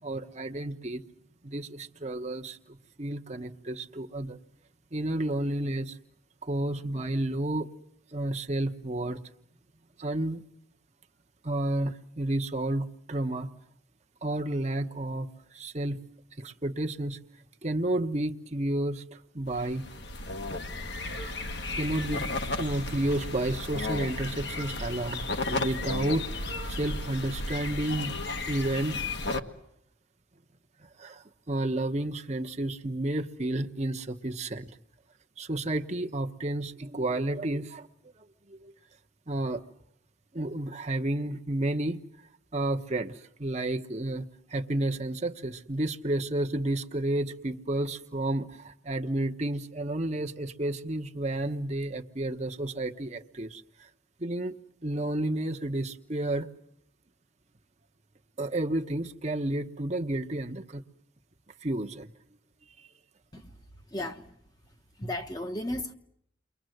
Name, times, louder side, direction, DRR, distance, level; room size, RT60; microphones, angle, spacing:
voice 1, 0.0-1.0 1.4-4.4 4.9-6.0 6.4-7.7 8.1-9.2 10.0-10.4 11.4-13.5 14.2-16.0 16.4-17.2 17.6-19.8 21.7-22.3 22.6-25.2 25.5-28.1 28.5-29.0 31.0-34.7 35.4-37.9 38.5-38.7 39.3-39.6 40.3-42.0 42.5-53.9 54.2-54.6 54.8-56.5 58.4-60.8 61.6-62.1 62.8-62.9, right 1 dB, 35° right, 1.1 m, -31 dB
sound 1, 19.5-29.4, left 2 dB, 60° left, 1.5 m, -34 dB
voice 2, 63.9-64.3 65.0-65.9, left 1 dB, 20° left, 1.1 m, -35 dB
29.5 x 23.0 x 7.9 m
head